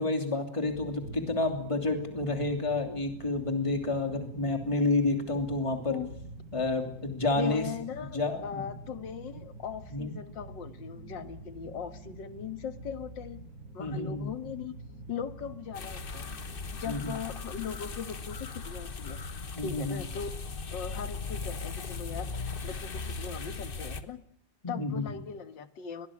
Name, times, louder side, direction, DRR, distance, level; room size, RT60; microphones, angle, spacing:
voice 1, 0.0-6.0 6.5-7.7 8.1-8.6 9.9-10.1 13.8-14.3 16.8-17.1 19.5-20.0 24.6-25.0, left 2 dB, 15° left, 5 dB, 2.9 m, -29 dB
sound 1, 0.6-17.4, right 3 dB, 50° right, 4.8 m, -47 dB
voice 2, 7.3-13.4 13.7-14.7 15.1-16.3 16.7-19.2 19.6-20.3 20.7-24.2 24.7-26.1, left 7 dB, 90° left, 10 dB, 2.2 m, -39 dB
sound 2, 15.7-24.0, left 4 dB, 35° left, 1.2 m, -38 dB
23.0 x 18.5 x 8.7 m, 0.64 s
omnidirectional pair, 1.9 m